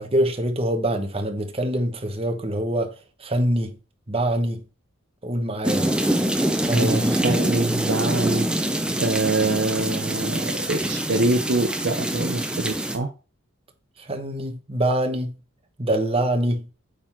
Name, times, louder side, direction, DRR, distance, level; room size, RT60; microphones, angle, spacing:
voice 1, 0.0-2.9 3.2-3.8 4.1-4.6 5.2-5.9 6.6-7.2 14.0-15.3 15.8-16.7, right 1 dB, 25° right, 1.1 m, -24 dB
sound 1, 5.6-13.0, right 1 dB, 5° right, 0.6 m, -25 dB
voice 2, 6.7-8.5 9.0-13.1, right 2 dB, 50° right, 0.7 m, -24 dB
8.8 x 3.9 x 4.5 m
head